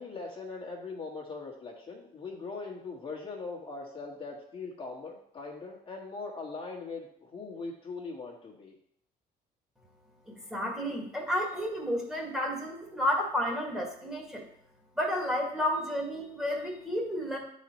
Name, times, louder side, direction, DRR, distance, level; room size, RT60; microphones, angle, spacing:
voice 1, 0.0-8.7, left 4 dB, 35° left, -2 dB, 1.5 m, -41 dB
voice 2, 10.5-14.4 15.0-17.4, equal, 5° right, -1 dB, 1.8 m, -31 dB
9.2 x 4.2 x 4.4 m, 0.67 s
cardioid pair, 110°, 17 cm